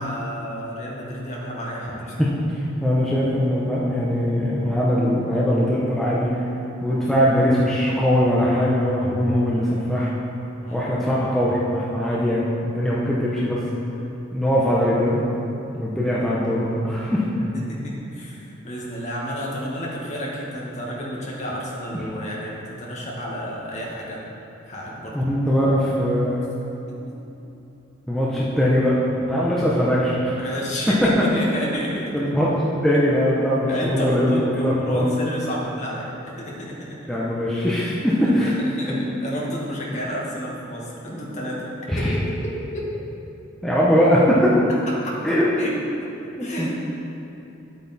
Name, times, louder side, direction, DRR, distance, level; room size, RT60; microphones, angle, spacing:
voice 1, 0.0-2.2 10.6-10.9 17.4-24.2 24.7-25.3 26.9-27.0 30.4-32.3 33.7-37.0 38.2-42.9 45.0-45.2 45.6-46.1 46.4-46.7, equal, 35° left, -4 dB, 1.6 m, -31 dB
voice 2, 1.9-2.3 2.8-6.3 6.8-10.1 10.7-13.6 14.3-15.3 15.7-17.3 25.1-26.4 28.1-29.0 29.3-30.6 32.1-32.5 32.8-35.0 37.1-38.5 38.9-39.0 41.9-42.1 43.6-44.6 45.2-45.5 46.4-46.7, equal, ahead, -8 dB, 0.9 m, -21 dB
9.9 x 8.3 x 4.2 m, 3.0 s
head